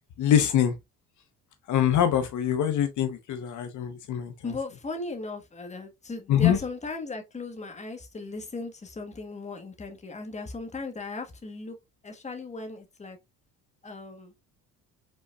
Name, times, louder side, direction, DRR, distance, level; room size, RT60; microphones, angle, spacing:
voice 1, 0.2-0.7 1.7-4.5 6.3-6.6, left 10 dB, 60° left, 0.9 m, -24 dB
voice 2, 4.4-11.8 12.0-13.2 13.8-14.3, left 3 dB, 20° left, 1.3 m, -37 dB
5.5 x 3.8 x 2.3 m
cardioid pair, 110°, 34 cm